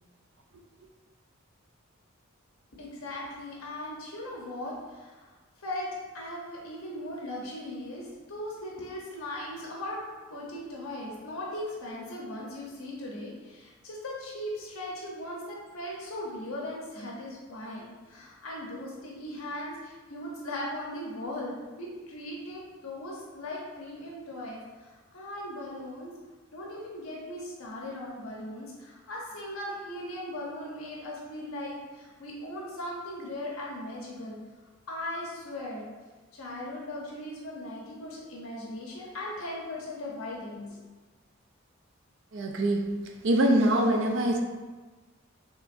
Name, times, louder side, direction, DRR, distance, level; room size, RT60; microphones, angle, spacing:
voice 1, 2.8-5.3 5.6-5.9 6.1-10.0 10.3-26.1 26.5-34.4 34.9-35.9 36.3-40.7, left 1 dB, 85° left, -3 dB, 0.9 m, -38 dB
voice 2, 42.3-42.9 43.2-44.4, right 1 dB, 60° right, 2 dB, 0.5 m, -23 dB
6.8 x 3.0 x 2.5 m, 1.3 s
head